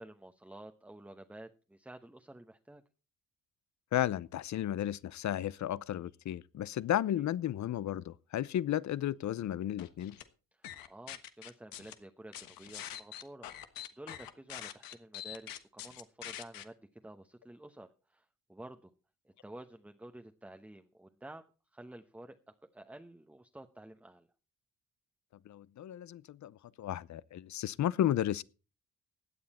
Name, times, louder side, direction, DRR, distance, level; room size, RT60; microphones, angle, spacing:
voice 1, 0.0-2.8 7.1-7.3 10.5-18.9 19.2-24.3, right 1 dB, 5° right, 1.0 m, -51 dB
voice 2, 3.9-10.2 25.5-26.5 26.8-28.4, left 11 dB, 60° left, 0.7 m, -33 dB
sound 1, 9.8-10.2 10.6-11.9 12.3-16.6, left 11 dB, 90° left, 1.4 m, -44 dB
16.5 x 9.6 x 4.3 m
cardioid pair, 95°, 33 cm